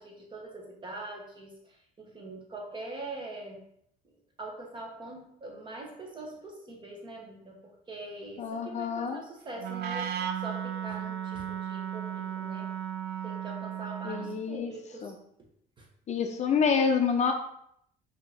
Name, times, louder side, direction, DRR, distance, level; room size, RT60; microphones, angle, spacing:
voice 1, 0.0-3.6 4.4-7.6 7.9-12.7 13.2-15.1 15.8-15.9, right 2 dB, 30° right, 0 dB, 1.2 m, -43 dB
voice 2, 8.4-9.2 14.0-14.7 15.0-15.2 16.1-17.3, left 6 dB, 45° left, 4 dB, 0.5 m, -27 dB
Wind instrument woodwind instrument, 9.6-14.4, right 9 dB, 75° right, 0.4 m, -35 dB
5.1 x 2.8 x 3.4 m, 0.72 s
cardioid pair, 110°, 17 cm